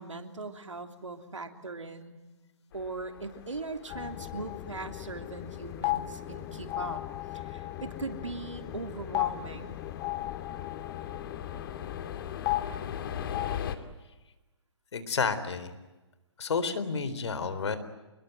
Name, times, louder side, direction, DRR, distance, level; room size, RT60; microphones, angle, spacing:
voice 1, 0.0-2.2 2.7-7.0 7.3-9.8, right 3 dB, 85° right, 6 dB, 3.3 m, -40 dB
sound 1, 2.7-13.8, left 8 dB, 50° left, 2.6 m, -42 dB
sound 2, 3.9-13.6, left 16 dB, 25° left, 0.9 m, -36 dB
voice 2, 14.9-15.7 16.4-17.8, left 5 dB, 65° left, 12 dB, 3.9 m, -30 dB
26.5 x 22.0 x 9.4 m, 1.1 s
figure-of-eight pair, 135°, 16 cm